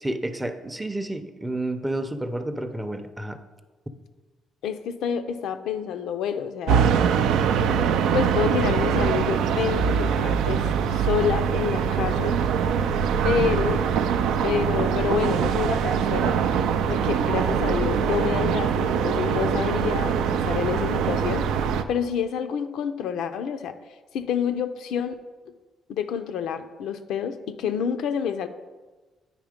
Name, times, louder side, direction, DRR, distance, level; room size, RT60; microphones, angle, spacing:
voice 1, 0.0-3.4, right 1 dB, 10° right, 9 dB, 0.5 m, -30 dB
voice 2, 4.6-6.9 8.1-12.4 13.2-13.8 14.4-16.4 16.8-21.5 21.9-23.8 24.1-25.2 25.9-28.5, left 8 dB, 85° left, 8 dB, 0.4 m, -28 dB
sound 1, 6.7-21.8, right 7 dB, 90° right, 0.3 m, -23 dB
9.0 x 3.1 x 5.0 m, 1.3 s
cardioid pair, 90°, 0 cm